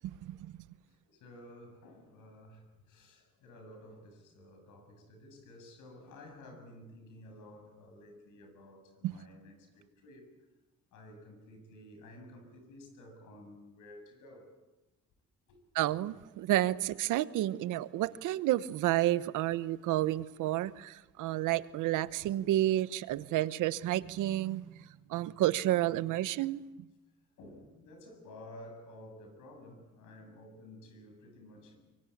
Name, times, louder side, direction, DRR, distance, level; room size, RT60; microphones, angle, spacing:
voice 1, 0.9-10.3 10.9-14.5 15.5-15.6 20.6-20.7 21.2-21.3 22.0-22.1 24.0-24.2 27.4-31.8, left 1 dB, 85° left, 7.6 m, -53 dB
voice 2, 15.7-24.7 25.1-26.6, right 14 dB, 90° right, 1.0 m, -30 dB
24.0 x 24.0 x 8.5 m
cardioid pair, 90°, 30 cm